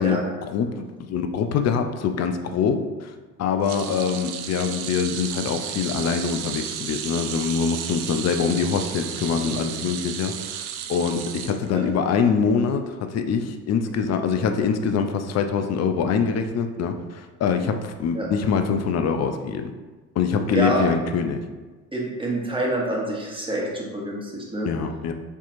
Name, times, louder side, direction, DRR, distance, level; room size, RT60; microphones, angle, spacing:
voice 1, 0.0-3.1 3.4-19.7 20.2-21.4 24.6-25.1, left 6 dB, 40° left, 7 dB, 0.4 m, -24 dB
sound 1, 3.6-12.1 12.5-12.7 13.9-14.0, right 9 dB, 65° right, 0.5 m, -34 dB
voice 2, 20.5-20.8 21.9-24.7, right 1 dB, 10° right, -3 dB, 1.1 m, -27 dB
4.5 x 2.8 x 2.5 m, 1.3 s
hypercardioid pair, 65°, 42 cm